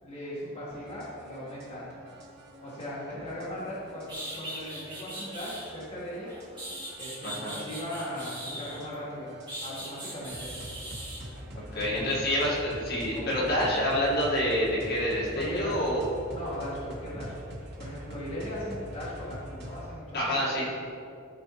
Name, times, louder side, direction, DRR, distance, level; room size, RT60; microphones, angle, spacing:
voice 1, 0.0-1.9 2.6-6.4 7.0-9.3 9.6-10.5 11.6-12.2 13.1-13.7 15.3-15.9 16.3-17.3 17.8-20.3, left 1 dB, 25° left, -9 dB, 1.5 m, -38 dB
sound 1, 0.7-19.9, equal, 50° right, 1.2 m, -45 dB
sound 2, 3.7-3.8 4.1-5.7 6.3-8.9 9.5-11.2, right 1 dB, 20° right, 1.8 m, -40 dB
voice 2, 7.2-7.5 11.7-16.0 20.1-20.7, equal, 50° left, -6 dB, 1.7 m, -27 dB
13.0 x 4.3 x 3.1 m, 2.4 s
head